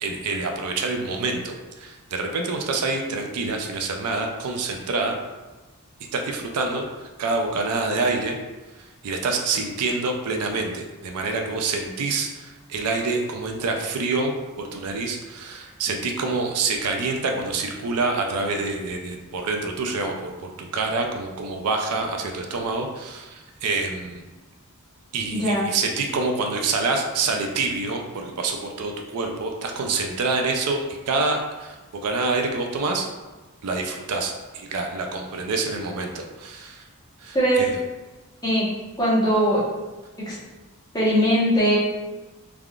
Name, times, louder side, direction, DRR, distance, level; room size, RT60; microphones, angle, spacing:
voice 1, 0.0-5.2 6.1-8.4 9.0-24.2 25.1-33.1 33.6-36.8 37.2-37.8, right 3 dB, 85° right, 3 dB, 0.4 m, -27 dB
voice 2, 25.3-25.6 37.3-37.7 38.4-38.7 39.0-39.6 40.3-40.4 40.9-41.8, equal, 15° left, -9 dB, 0.9 m, -20 dB
3.4 x 2.3 x 2.3 m, 1.2 s
head